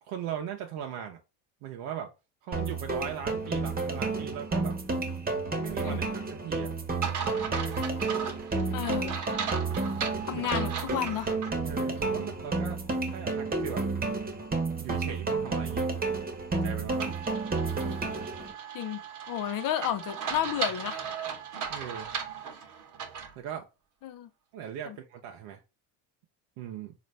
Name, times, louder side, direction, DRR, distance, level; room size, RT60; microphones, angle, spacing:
voice 1, 0.0-1.2 1.6-2.1 2.4-4.8 5.6-6.7 10.3-10.4 11.6-12.8 13.1-13.8 14.8-15.9 16.5-17.2 21.7-22.1 23.4-23.7 24.5-25.6 26.6-26.9, right 9 dB, 75° right, 0.7 m, -39 dB
sound 1, 2.5-18.5, right 3 dB, 20° right, 1.0 m, -31 dB
sound 2, 7.0-11.5 12.0-12.1 17.0-23.4, right 7 dB, 45° right, 1.0 m, -37 dB
voice 2, 8.7-9.2 10.3-11.3 18.7-21.0 24.0-24.3 24.9-25.0, left 11 dB, 50° left, 0.6 m, -32 dB
3.9 x 2.6 x 3.2 m
supercardioid pair, 90°, 43 cm